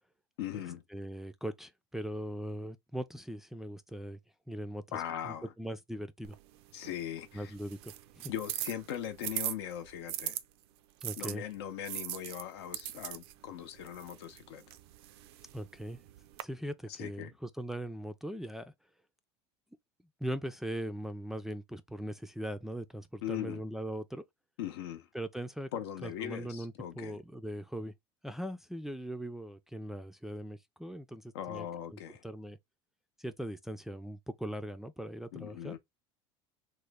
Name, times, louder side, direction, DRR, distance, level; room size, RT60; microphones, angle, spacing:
voice 1, 0.4-0.8 4.9-5.5 6.7-7.5 8.3-10.4 11.2-14.8 16.9-17.3 23.2-23.6 24.6-25.1 25.7-27.2 31.3-32.2 35.3-35.8, left 10 dB, 90° left, 0.7 m, -40 dB
voice 2, 0.9-4.2 4.5-6.4 7.3-8.3 11.0-11.4 15.5-16.0 16.4-18.7 20.2-24.2 25.1-25.7 26.0-27.9 28.2-31.7 31.9-32.6 33.2-35.8, equal, 5° right, 0.3 m, -40 dB
sound 1, 6.2-10.4 11.0-16.4, right 14 dB, 80° right, 0.4 m, -41 dB
3.1 x 2.1 x 3.4 m
supercardioid pair, 115°, 13 cm